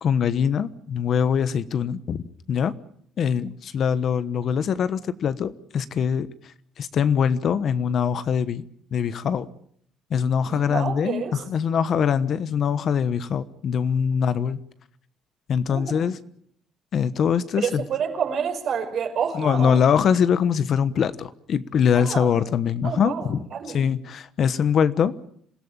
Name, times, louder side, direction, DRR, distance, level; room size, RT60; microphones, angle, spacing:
voice 1, 0.0-2.7 3.2-8.6 8.9-9.5 10.1-14.6 15.5-16.2 16.9-17.8 19.3-25.1, left 7 dB, 50° left, 1.2 m, -23 dB
voice 2, 10.5-11.4 15.7-16.0 17.6-19.8 22.0-22.3 22.8-23.8, right 7 dB, 55° right, 5.4 m, -28 dB
27.0 x 16.5 x 8.9 m
cardioid pair, 130°, 0 cm